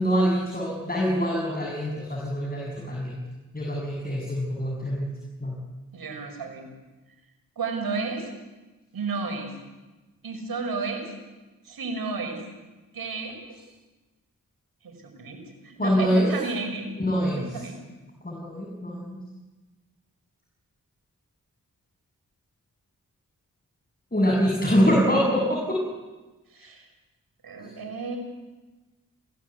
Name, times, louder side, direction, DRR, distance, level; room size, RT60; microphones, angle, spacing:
voice 1, 0.0-3.2 3.5-5.1 5.4-5.6 15.8-16.3 17.0-17.6 18.2-19.2 24.1-25.8 27.6-27.7, equal, 25° left, -2 dB, 7.3 m, -24 dB
voice 2, 5.9-6.7 7.6-8.3 8.9-9.5 10.2-11.1 11.6-12.4 12.9-13.6 14.8-16.9 17.3-17.8 26.5-26.9 27.4-28.2, right 4 dB, 85° right, 4 dB, 5.7 m, -32 dB
27.0 x 17.0 x 8.3 m, 1.2 s
cardioid pair, 50°, 35 cm